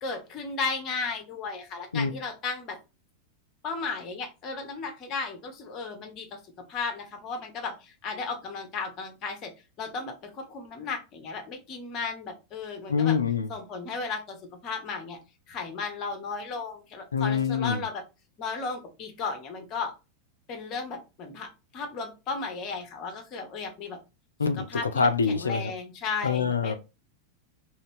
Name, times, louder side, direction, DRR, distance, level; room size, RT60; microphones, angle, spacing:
voice 1, 0.0-2.8 3.6-6.4 6.7-13.2 13.5-14.4 14.6-15.2 15.5-18.0 18.4-19.9 20.5-24.0 24.7-24.9 25.3-26.8, left 4 dB, 35° left, 1.0 m, -35 dB
voice 2, 12.9-13.5 17.1-17.8 24.4-25.7 26.2-26.7, left 5 dB, 75° left, 0.4 m, -25 dB
3.0 x 2.8 x 3.3 m
figure-of-eight pair, 90°, 0 cm